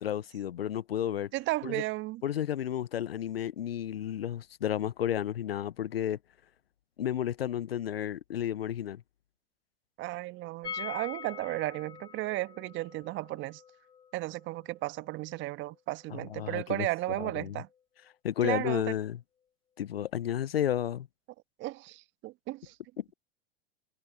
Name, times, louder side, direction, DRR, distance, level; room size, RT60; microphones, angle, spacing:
voice 1, 0.0-1.3 1.6-1.8 2.2-6.2 7.0-9.0 16.1-16.9 17.2-17.6 18.2-19.2 19.8-21.1 23.0-23.1, left 10 dB, 75° left, 0.9 m, -32 dB
voice 2, 1.3-2.2 10.0-13.6 14.1-17.7 18.4-18.9 21.6-22.8, right 19 dB, 40° right, 1.5 m, -34 dB
sound 1, 10.6-16.4 16.7-16.8 17.0-17.1, left 6 dB, 15° left, 0.7 m, -45 dB
figure-of-eight pair, 90°, 30 cm